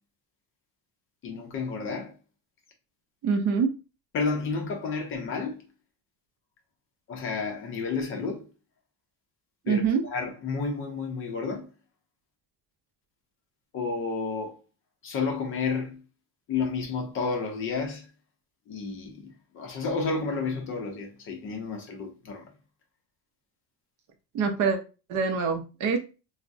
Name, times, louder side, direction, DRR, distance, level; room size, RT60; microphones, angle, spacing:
voice 1, 1.2-2.1 4.1-5.6 7.1-8.5 9.7-11.7 13.7-14.6 15.0-16.0 16.5-18.1 18.7-22.5, left 4 dB, 35° left, 0.5 m, -31 dB
voice 2, 3.2-3.7 9.7-10.0 24.3-24.8 25.1-26.0, right 5 dB, 45° right, 0.5 m, -24 dB
3.5 x 2.0 x 2.5 m
cardioid pair, 170°, 39 cm